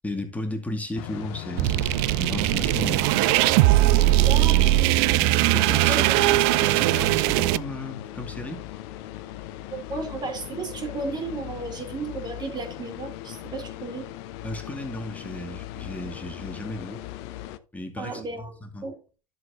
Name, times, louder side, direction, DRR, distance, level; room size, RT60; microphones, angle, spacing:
voice 1, 0.0-3.1 5.5-8.6 14.4-17.0 17.7-18.9, left 1 dB, 10° left, 2.3 m, -34 dB
sound 1, 1.0-17.6, left 15 dB, 55° left, 0.8 m, -38 dB
sound 2, 1.6-7.6, right 18 dB, 50° right, 0.4 m, -20 dB
voice 2, 4.3-4.6 5.9-6.4 9.7-14.1 18.0-18.5 18.8-19.0, right 3 dB, 25° right, 3.3 m, -34 dB
12.5 x 7.5 x 2.6 m
figure-of-eight pair, 75°, 17 cm